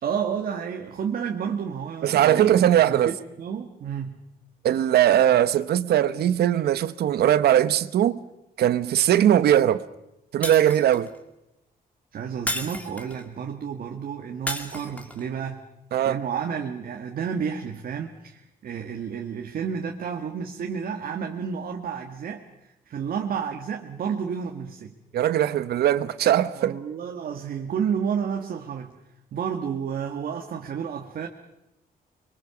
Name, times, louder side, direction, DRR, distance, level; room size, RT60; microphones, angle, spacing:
voice 1, 0.0-4.2 12.1-15.6 16.0-24.9 26.5-29.0 29.3-31.3, right 7 dB, 65° right, 1.7 m, -31 dB
voice 2, 2.0-3.1 4.6-8.2 8.6-9.8 10.3-11.1 15.9-16.2 25.1-26.7, right 11 dB, 90° right, 1.0 m, -20 dB
Shatter, 10.4-11.2 12.5-13.3 14.5-15.2, left 1 dB, 10° left, 2.5 m, -32 dB
24.5 x 23.0 x 7.1 m
cardioid pair, 130°, 16 cm